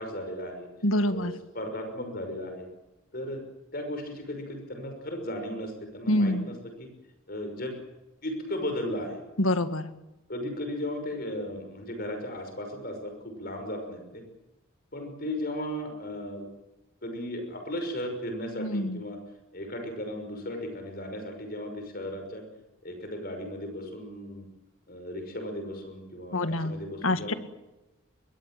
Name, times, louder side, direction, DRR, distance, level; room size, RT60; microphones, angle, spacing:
voice 1, 0.0-0.7 1.1-1.3 1.5-2.7 3.1-3.4 3.7-6.9 7.3-7.8 8.2-9.2 10.3-14.2 14.9-16.4 17.0-19.2 19.5-22.4 22.8-24.5 24.9-27.4, left 1 dB, 45° left, 5 dB, 6.0 m, -36 dB
voice 2, 0.8-1.3 6.1-6.5 9.4-9.9 18.6-19.0 26.3-26.7 27.0-27.3, left 1 dB, 80° left, 10 dB, 2.0 m, -26 dB
26.0 x 22.5 x 7.7 m, 0.98 s
head